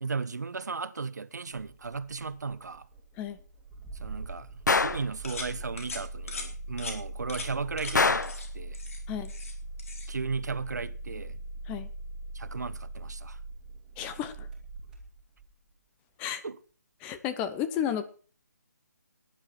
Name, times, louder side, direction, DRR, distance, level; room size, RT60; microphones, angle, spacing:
voice 1, 0.0-2.9 4.0-8.8 10.1-11.4 12.3-13.4 16.4-16.6, right 4 dB, 75° right, 1.3 m, -36 dB
Engine starting, 1.5-15.6, right 2 dB, 5° right, 3.0 m, -41 dB
Gunshot gunfire, 4.7-5.1 7.9-8.4, left 4 dB, 85° left, 1.0 m, -24 dB
sound 1, 5.2-5.5 5.8-6.0 6.3-6.5 6.8-7.0 7.3-7.5 7.8-7.9 8.2-8.5 8.7-9.5 9.8-10.1, left 4 dB, 50° left, 4.4 m, -39 dB
voice 2, 14.0-14.5 16.2-16.4 17.0-18.1, left 9 dB, 15° left, 0.9 m, -32 dB
17.5 x 11.0 x 4.6 m
hypercardioid pair, 160°, 9 cm